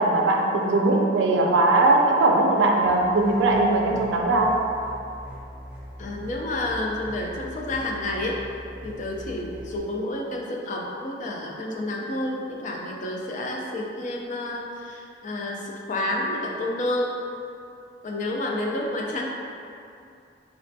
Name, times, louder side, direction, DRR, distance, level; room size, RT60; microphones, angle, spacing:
voice 1, 0.0-4.6, right 2 dB, 90° right, 1 dB, 0.4 m, -20 dB
sound 1, 2.8-9.8, equal, 10° right, 0.5 m, -42 dB
voice 2, 6.0-8.4 8.8-17.2 18.0-19.3, left 1 dB, 45° left, -1 dB, 0.4 m, -29 dB
4.1 x 2.1 x 2.6 m, 2.6 s
head